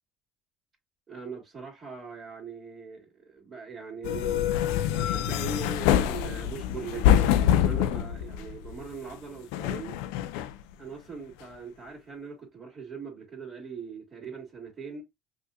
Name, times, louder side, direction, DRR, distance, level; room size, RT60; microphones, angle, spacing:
voice 1, 1.1-4.6 4.9-9.9 10.8-15.0, right 5 dB, 30° right, 2.0 m, -40 dB
sound 1, 4.0-8.9 9.5-10.6, left 10 dB, 85° left, 0.4 m, -25 dB
5.3 x 2.5 x 2.2 m
cardioid pair, 110°, 0 cm